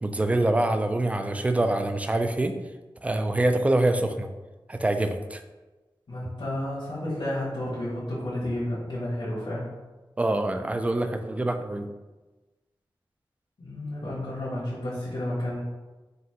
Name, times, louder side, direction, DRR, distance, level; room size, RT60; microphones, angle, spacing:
voice 1, 0.0-2.6 3.0-4.3 4.7-5.4 10.2-11.9, right 1 dB, 15° right, 7 dB, 0.3 m, -25 dB
voice 2, 6.1-9.7 13.6-15.6, left 1 dB, 75° left, -8 dB, 1.3 m, -31 dB
5.2 x 2.6 x 2.8 m, 1.2 s
wide cardioid pair, 95°, 9 cm